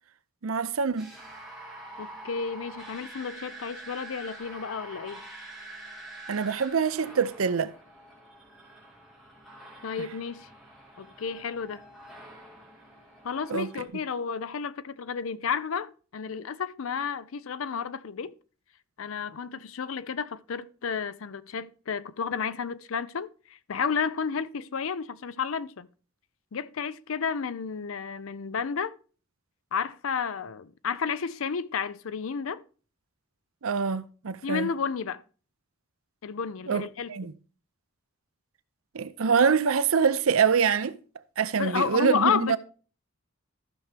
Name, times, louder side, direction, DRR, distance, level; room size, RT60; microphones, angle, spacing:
voice 1, 0.4-1.1 6.3-7.7 13.5-13.7 33.6-34.7 36.7-37.3 38.9-41.0 41.4-42.6, right 6 dB, 85° right, 0.6 m, -25 dB
sound 1, 1.0-13.9, right 1 dB, ahead, 2.2 m, -46 dB
voice 2, 2.0-5.2 9.8-10.5 11.0-11.8 13.2-18.3 19.0-25.9 26.5-29.0 29.7-32.6 34.4-35.2 36.2-37.3 41.5-42.6, left 6 dB, 80° left, 0.5 m, -31 dB
14.0 x 5.9 x 3.4 m
head